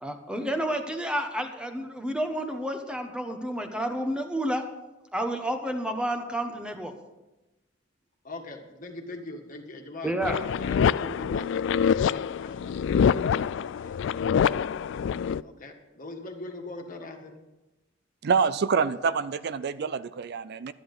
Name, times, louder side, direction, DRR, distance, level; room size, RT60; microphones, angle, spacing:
voice 1, 0.0-4.6 5.1-6.9 10.0-10.4, right 1 dB, 5° right, 5 dB, 1.1 m, -30 dB
voice 2, 8.2-13.2 13.7-14.0 15.4-17.4, left 2 dB, 45° left, 3 dB, 1.7 m, -41 dB
sound 1, 10.2-15.4, left 7 dB, 65° left, 0.3 m, -25 dB
voice 3, 18.2-20.7, right 5 dB, 55° right, 15 dB, 0.4 m, -26 dB
11.5 x 10.0 x 5.5 m, 1.0 s
head